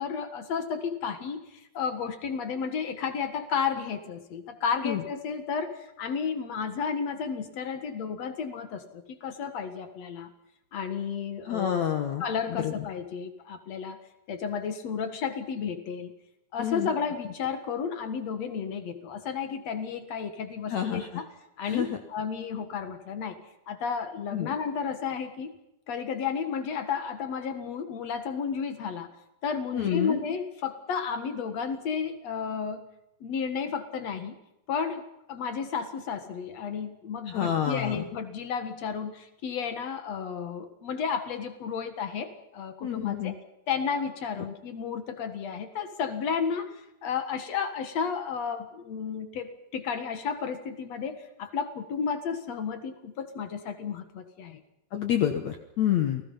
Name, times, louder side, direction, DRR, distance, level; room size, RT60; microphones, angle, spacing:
voice 1, 0.0-10.3 10.7-11.8 12.2-14.0 14.3-16.1 16.5-21.3 21.6-25.5 25.9-29.1 29.4-32.9 33.2-34.4 34.7-43.3 43.7-46.7 47.0-54.6, left 6 dB, 55° left, 8 dB, 2.0 m, -32 dB
voice 2, 11.4-12.2 12.5-12.8 16.6-16.9 20.7-21.2 21.6-22.0 24.3-24.5 29.7-30.2 37.3-38.0 42.8-43.3 54.9-56.2, left 10 dB, 90° left, 6 dB, 1.5 m, -28 dB
29.5 x 19.0 x 5.6 m, 0.86 s
omnidirectional pair, 5.3 m